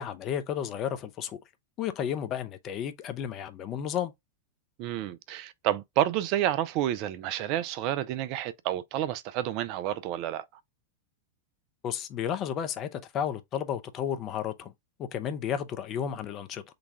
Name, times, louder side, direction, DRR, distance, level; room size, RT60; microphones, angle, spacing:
voice 1, 0.0-1.4 1.8-4.1 11.8-14.7 15.0-16.6, left 9 dB, 35° left, 0.6 m, -32 dB
voice 2, 4.8-10.4, right 12 dB, 45° right, 0.4 m, -29 dB
3.9 x 2.3 x 4.5 m
figure-of-eight pair, 90°, 0 cm